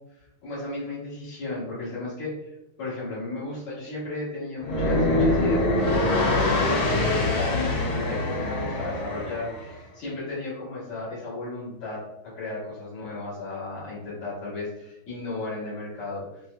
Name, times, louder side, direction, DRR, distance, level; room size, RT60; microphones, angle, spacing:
voice 1, 0.4-2.5 2.8-16.4, left 3 dB, 90° left, -10 dB, 2.5 m, -34 dB
sound 1, 4.6-9.7, left 2 dB, 55° left, 1.2 m, -24 dB
5.9 x 2.1 x 2.3 m, 0.88 s
omnidirectional pair, 2.4 m